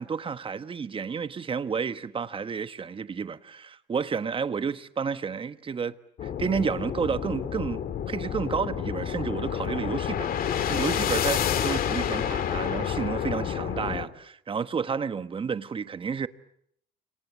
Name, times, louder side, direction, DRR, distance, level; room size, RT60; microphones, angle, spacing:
voice 1, 0.0-5.9 6.2-16.3, right 6 dB, 30° right, 1.3 m, -31 dB
sound 1, 6.2-14.1, left 9 dB, 60° left, 2.4 m, -29 dB
29.0 x 26.0 x 7.4 m
cardioid pair, 110°, 17 cm